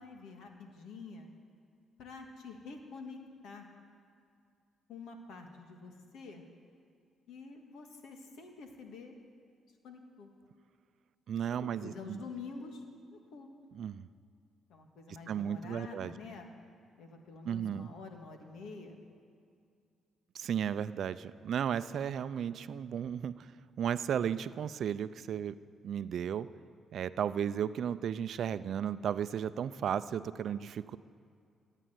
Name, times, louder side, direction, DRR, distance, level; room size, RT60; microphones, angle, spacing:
voice 1, 0.0-1.3 2.0-3.7 4.9-6.4 7.3-9.2 9.8-10.3 11.5-12.8 13.1-13.5 14.7-16.5 17.0-19.0, left 4 dB, 80° left, 4 dB, 1.9 m, -47 dB
voice 2, 11.3-12.2 13.7-14.1 15.3-16.1 17.4-17.9 20.3-23.5 23.8-25.5 25.8-26.5 26.9-31.0, right 8 dB, 65° right, 14 dB, 0.5 m, -34 dB
15.5 x 9.1 x 9.3 m, 2.3 s
cardioid pair, 90°, 0 cm